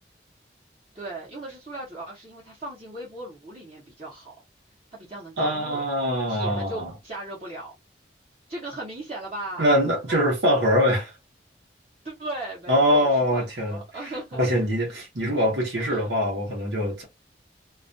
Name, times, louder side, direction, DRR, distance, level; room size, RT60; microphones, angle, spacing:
voice 1, 0.9-4.3 4.9-5.8 6.3-7.7 8.5-9.7 10.1-10.2 12.0-14.6 15.8-16.1, right 2 dB, 35° right, 0.8 m, -37 dB
voice 2, 5.4-6.9 9.6-11.1 12.7-17.0, equal, 80° right, 0.9 m, -23 dB
2.4 x 2.2 x 2.5 m
head